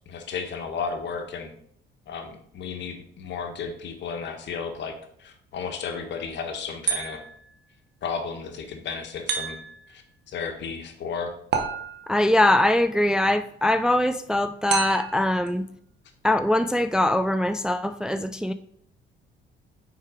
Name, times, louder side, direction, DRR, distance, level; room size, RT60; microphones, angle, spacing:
voice 1, 0.1-1.5 2.1-7.2 8.0-9.6 9.9-11.3, left 5 dB, 65° left, 5 dB, 1.3 m, -33 dB
sound 1, 6.9-7.5 9.3-9.9 11.5-12.3 14.7-15.3, right 6 dB, 60° right, 1.2 m, -29 dB
voice 2, 12.1-15.6 16.2-18.5, left 1 dB, 5° right, 10 dB, 0.3 m, -22 dB
5.7 x 4.6 x 4.9 m, 0.66 s
cardioid pair, 90°, 20 cm